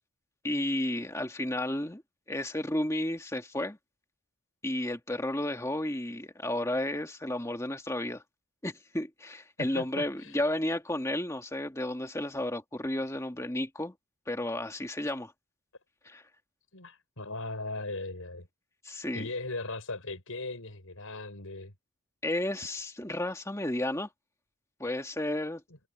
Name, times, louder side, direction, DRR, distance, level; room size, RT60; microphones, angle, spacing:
voice 1, 0.4-2.0 2.3-3.8 4.6-8.2 8.6-13.9 14.3-15.3 16.1-16.2 18.8-19.3 22.2-24.1 24.8-25.6, left 1 dB, 15° left, 1.9 m, -32 dB
voice 2, 9.6-10.4 16.7-18.5 19.1-21.7, left 2 dB, 80° left, 5.3 m, -38 dB
head